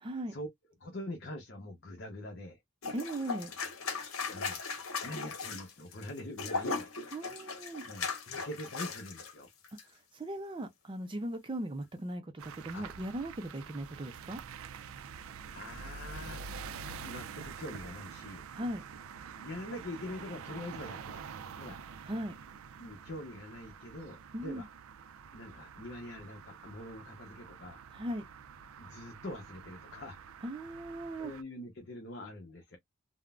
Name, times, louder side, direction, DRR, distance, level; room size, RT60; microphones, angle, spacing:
voice 1, 0.0-0.3 2.9-3.5 7.1-7.8 9.9-14.4 18.5-18.8 22.0-22.3 24.3-24.6 27.9-28.2 30.4-31.3, right 1 dB, 25° right, 0.4 m, -38 dB
voice 2, 0.8-2.6 4.3-4.6 5.0-6.9 7.9-9.5 12.7-12.8 15.5-16.4 17.0-18.4 19.4-21.3 21.6-21.8 22.8-24.7 25.3-27.8 28.8-30.3 31.2-32.8, left 1 dB, 55° left, 0.8 m, -44 dB
sound 1, 2.8-9.3 9.6-9.8, left 4 dB, 90° left, 0.8 m, -38 dB
sound 2, 12.4-31.4, right 6 dB, 85° right, 0.4 m, -47 dB
3.6 x 2.1 x 2.3 m
head